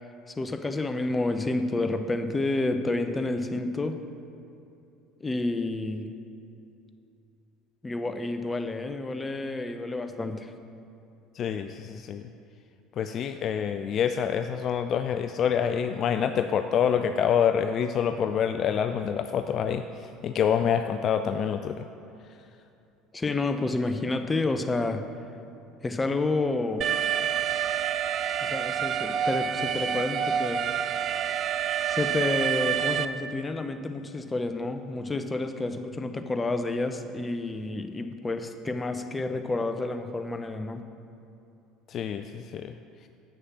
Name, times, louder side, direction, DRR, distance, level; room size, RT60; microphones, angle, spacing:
voice 1, 0.3-4.0 5.2-6.1 7.8-10.5 23.1-25.0 25.8-26.9 28.4-30.6 31.9-40.8, left 2 dB, 20° left, 7 dB, 0.7 m, -29 dB
voice 2, 11.3-12.3 13.0-21.9 41.9-42.7, left 8 dB, 45° left, 8 dB, 0.3 m, -27 dB
Alarm, 26.8-33.1, right 9 dB, 45° right, 0.4 m, -28 dB
7.4 x 6.5 x 6.2 m, 2.7 s
hypercardioid pair, 70°, 0 cm